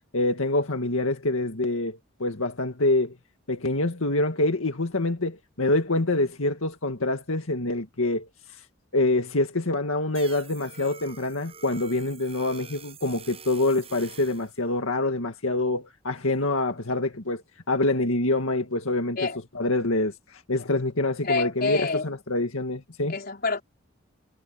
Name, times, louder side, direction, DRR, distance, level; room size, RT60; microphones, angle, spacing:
voice 1, 0.1-3.1 3.5-8.3 8.9-17.4 17.7-19.2 19.6-23.1, left 2 dB, 85° left, 2.0 m, -26 dB
sound 1, 10.1-14.5, right 6 dB, 30° right, 6.6 m, -46 dB
voice 2, 21.2-22.1 23.1-23.6, left 4 dB, 45° left, 4.4 m, -27 dB
head